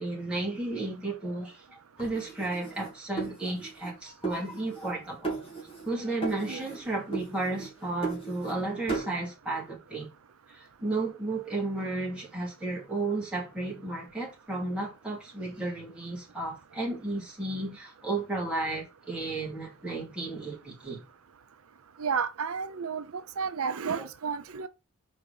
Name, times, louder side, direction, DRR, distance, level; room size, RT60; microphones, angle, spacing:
voice 1, 0.0-5.5 5.8-10.1 10.5-21.0 24.0-24.1, right 2 dB, 5° right, 2.5 m, -33 dB
sound 1, 2.0-3.9 4.2-5.0 5.2-5.9 6.2-6.8 7.1-8.6 8.9-9.2, right 4 dB, 25° left, 2.6 m, -36 dB
voice 2, 22.0-24.7, right 6 dB, 75° right, 0.6 m, -32 dB
5.1 x 4.6 x 5.4 m
head